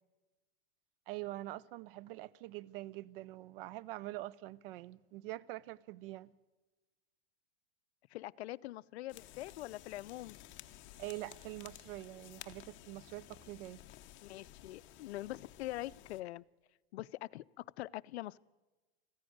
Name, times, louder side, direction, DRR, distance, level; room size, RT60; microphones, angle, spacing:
voice 1, 1.1-6.3 11.0-13.8, right 17 dB, 60° right, 0.5 m, -45 dB
voice 2, 8.1-10.4 14.2-16.4 16.9-18.4, left 16 dB, 80° left, 0.5 m, -44 dB
sound 1, 9.1-16.2, left 14 dB, 35° left, 0.8 m, -55 dB
14.5 x 10.5 x 9.3 m
hypercardioid pair, 125°, 32 cm